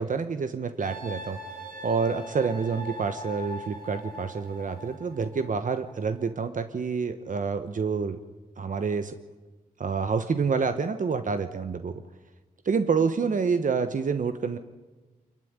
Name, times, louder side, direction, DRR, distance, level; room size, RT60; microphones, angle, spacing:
voice 1, 0.0-1.4 1.8-8.2 8.6-9.1 9.8-12.0 12.6-14.6, right 5 dB, 60° right, 9 dB, 1.0 m, -28 dB
sound 1, 0.8-6.2, equal, 80° right, 6.7 m, -41 dB
24.5 x 15.5 x 9.7 m, 1.3 s
cardioid pair, 50°, 15 cm